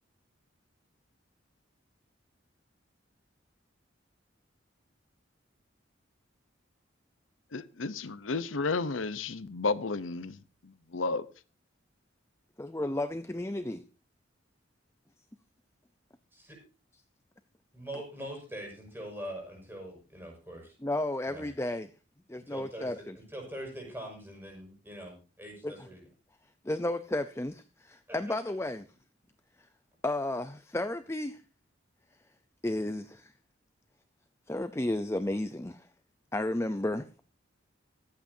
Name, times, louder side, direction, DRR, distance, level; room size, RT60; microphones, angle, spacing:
voice 1, 7.5-10.4 10.6-11.2, left 3 dB, 90° left, 0.8 m, -32 dB
voice 2, 12.6-13.8 20.8-21.9 22.3-23.1 25.6-25.7 26.6-28.8 30.0-31.4 32.6-33.3 34.5-35.9 36.3-37.1, left 1 dB, 15° left, 0.6 m, -32 dB
voice 3, 17.7-20.8 21.2-21.5 22.3-26.0 28.1-28.3, right 1 dB, 10° right, 6.3 m, -43 dB
24.5 x 8.7 x 2.7 m
head